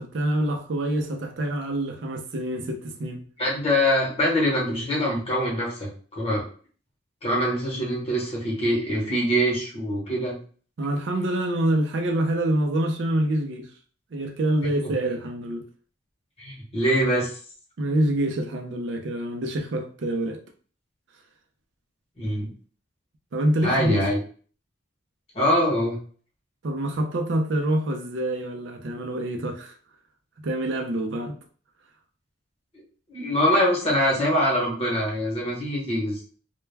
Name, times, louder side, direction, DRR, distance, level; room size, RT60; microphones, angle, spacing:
voice 1, 0.0-3.3 10.8-13.7 14.1-15.6 17.8-20.4 23.3-24.0 26.6-29.7 30.4-31.4, right 1 dB, 70° right, 0.5 m, -26 dB
voice 2, 3.4-6.5 7.2-10.4 14.8-14.9 16.4-17.3 22.2-22.5 23.6-24.2 25.3-26.0 33.1-36.2, equal, 30° left, 1.0 m, -24 dB
2.2 x 2.2 x 3.2 m
head